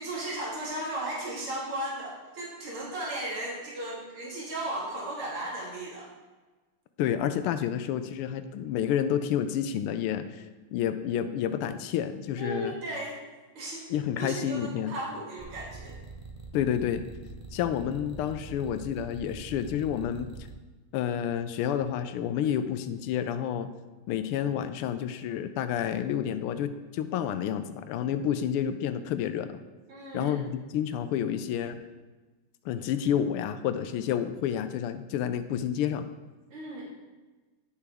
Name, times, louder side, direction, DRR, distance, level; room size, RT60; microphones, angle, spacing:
voice 1, 0.0-6.1 12.4-13.2 13.6-13.8 14.2-16.0 29.9-30.4 36.5-36.8, right 1 dB, 90° right, -4 dB, 2.8 m, -35 dB
voice 2, 7.0-10.4 10.7-12.8 13.9-14.9 16.5-17.0 17.5-20.3 20.9-23.7 24.1-29.6 30.1-31.8 32.6-36.1, left 9 dB, 90° left, 10 dB, 1.5 m, -29 dB
sound 1, 15.4-20.5, right 4 dB, 60° right, 0.3 m, -45 dB
9.8 x 6.8 x 3.5 m, 1.3 s
omnidirectional pair, 2.4 m